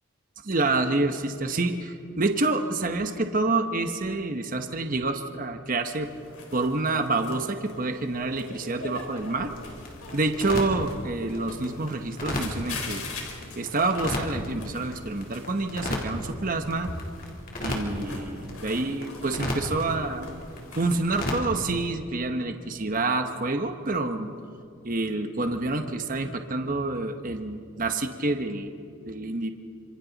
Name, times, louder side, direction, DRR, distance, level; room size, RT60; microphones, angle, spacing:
voice 1, 0.4-6.1 6.5-9.6 10.1-13.0 13.6-16.9 17.6-20.4 20.7-24.3 24.8-28.7 29.0-29.5, right 2 dB, 40° right, 6 dB, 1.0 m, -28 dB
sound 1, 5.8-21.1, left 3 dB, 85° left, 4.3 m, -43 dB
sound 2, 9.2-21.9, left 1 dB, 40° left, 3.3 m, -36 dB
29.0 x 26.5 x 4.1 m, 2.3 s
head